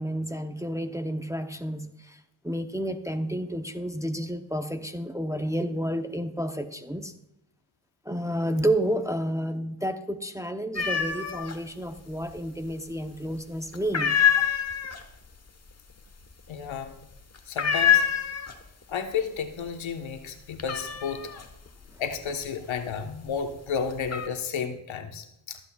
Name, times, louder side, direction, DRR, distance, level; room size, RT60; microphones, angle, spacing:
voice 1, 0.0-7.1 8.0-14.2 21.9-22.0, right 1 dB, 5° right, 0.8 m, -30 dB
sound 1, 10.7-11.6 11.9-12.7 13.0-13.4 13.7-18.8 19.1-19.7 20.0-23.2 23.7-24.3, left 8 dB, 30° left, 1.2 m, -26 dB
voice 2, 16.5-17.0 17.5-18.0 18.9-21.4 22.0-25.6, left 6 dB, 65° left, 1.3 m, -32 dB
22.0 x 8.1 x 2.4 m
supercardioid pair, 55°, 50 cm